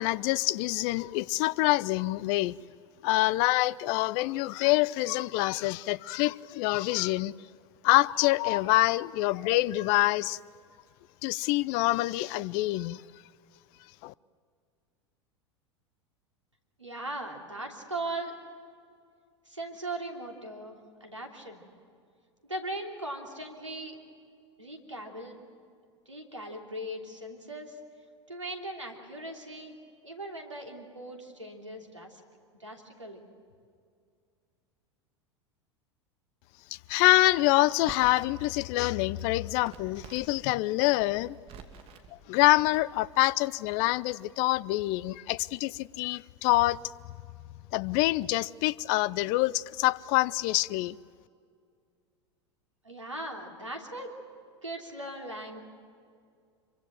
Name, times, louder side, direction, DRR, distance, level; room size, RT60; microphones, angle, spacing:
voice 1, 0.0-2.5 3.0-7.4 7.8-10.4 11.2-13.0 14.0-14.1 36.9-41.4 42.3-46.8 47.7-51.0, left 18 dB, 45° left, 0.5 m, -26 dB
voice 2, 16.8-18.3 19.4-21.6 22.5-24.0 24.6-25.4 26.1-27.8 28.3-29.8 30.0-32.2 32.6-33.2 52.8-54.1 54.6-55.6, right 1 dB, 90° right, 3.1 m, -39 dB
Crackle, 37.0-38.5 38.8-40.4 40.7-42.1 42.6-43.2, right 7 dB, 40° right, 2.6 m, -50 dB
26.0 x 23.5 x 7.8 m
figure-of-eight pair, 85°, 15 cm